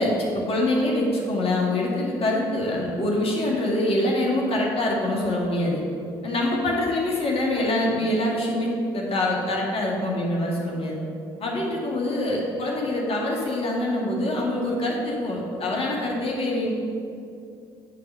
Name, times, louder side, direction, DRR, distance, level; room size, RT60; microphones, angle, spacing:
voice 1, 0.0-5.8 6.2-11.0 11.4-16.7, left 1 dB, 45° left, -2 dB, 2.0 m, -25 dB
9.1 x 4.1 x 6.6 m, 2.5 s
hypercardioid pair, 50°, 13 cm